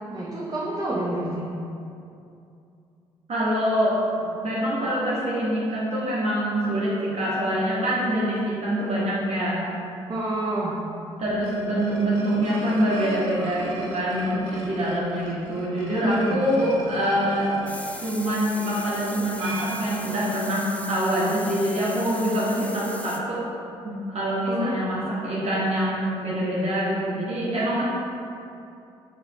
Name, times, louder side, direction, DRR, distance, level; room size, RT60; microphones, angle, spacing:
voice 1, 0.1-1.5 10.1-10.8 16.0-16.4 24.5-24.8, right 1 dB, 25° right, -6 dB, 0.7 m, -28 dB
voice 2, 3.3-9.6 11.2-17.6 18.0-23.4 23.8-27.8, equal, 45° right, -8 dB, 1.1 m, -25 dB
sound 1, 11.2-20.5, right 2 dB, 75° right, 0.5 m, -40 dB
sound 2, 17.7-23.2, left 2 dB, 10° left, 0.4 m, -39 dB
5.7 x 2.5 x 2.9 m, 2.6 s
hypercardioid pair, 45°, 15 cm